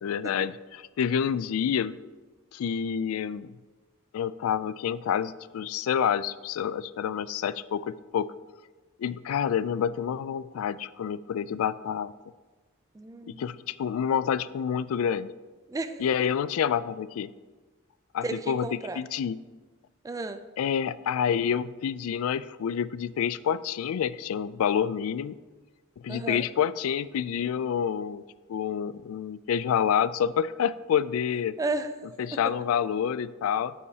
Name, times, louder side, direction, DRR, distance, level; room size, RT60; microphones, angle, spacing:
voice 1, 0.0-2.0 2.5-3.5 4.1-8.3 9.0-12.1 13.3-15.3 16.0-17.3 18.1-19.4 20.6-25.3 26.0-28.2 28.5-31.5 32.2-33.7, left 8 dB, 90° left, 17 dB, 0.3 m, -28 dB
voice 2, 12.9-13.5 15.7-16.0 18.2-19.0 20.0-20.4 26.1-26.4 31.6-31.9 32.3-32.4, right 3 dB, 15° right, 10 dB, 0.3 m, -33 dB
8.6 x 8.4 x 2.8 m, 1.3 s
head